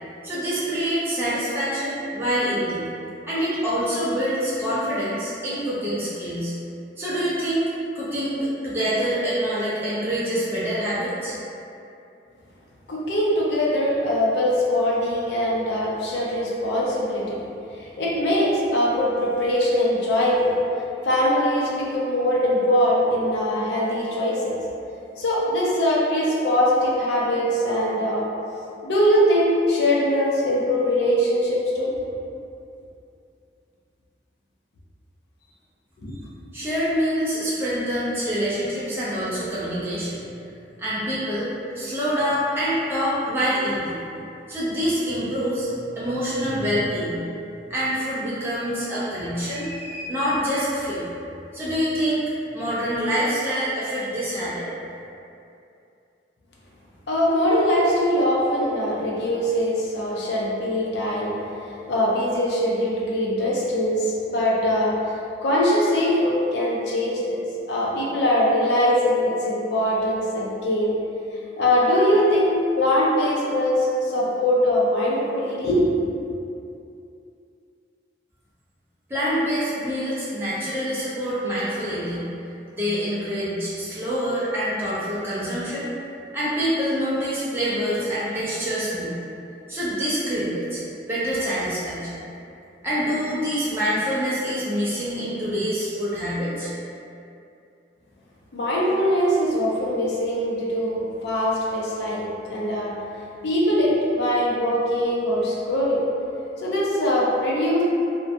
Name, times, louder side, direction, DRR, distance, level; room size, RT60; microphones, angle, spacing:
voice 1, 0.2-2.8 3.2-6.5 7.0-7.7 7.9-11.4 36.5-40.2 40.8-44.0 44.5-45.7 46.0-47.2 47.7-51.0 51.5-52.2 52.5-54.7 79.1-82.2 82.7-85.9 86.3-89.1 89.7-90.8 91.1-92.2 92.8-96.7, equal, 15° right, -10 dB, 0.5 m, -26 dB
voice 2, 12.9-17.4 17.7-20.5 21.0-24.5 25.2-28.3 28.8-31.9 57.1-67.4 67.7-70.9 71.6-76.0 98.5-102.9 103.4-106.0 106.6-107.8, equal, 70° left, -5 dB, 0.5 m, -22 dB
2.6 x 2.1 x 2.5 m, 2.6 s
head